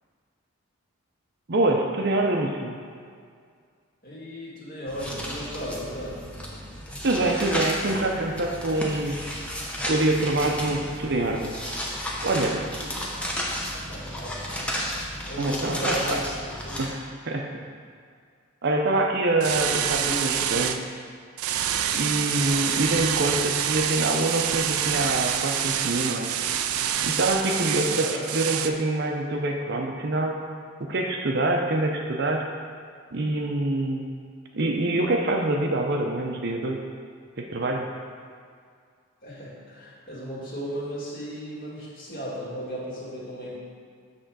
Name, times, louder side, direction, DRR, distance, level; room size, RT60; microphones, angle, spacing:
voice 1, 1.5-2.8 7.0-9.2 9.9-11.6 12.2-12.7 15.4-16.2 16.8-17.6 18.6-20.8 21.9-26.3 27.0-30.4 30.8-32.5 33.1-34.1 34.5-36.8 37.4-37.9, right 2 dB, 50° right, 2 dB, 0.6 m, -25 dB
voice 2, 4.0-6.5 12.8-13.1 13.7-14.9 15.2-16.3 16.6-16.8 19.9-20.5 27.9-28.3 39.2-43.5, equal, 40° left, -7 dB, 2.0 m, -36 dB
sound 1, 4.9-16.9, equal, 5° left, 0.7 m, -33 dB
sound 2, 19.4-20.8 21.4-28.7, right 9 dB, 90° right, 0.4 m, -26 dB
8.0 x 3.7 x 6.1 m, 2.1 s
head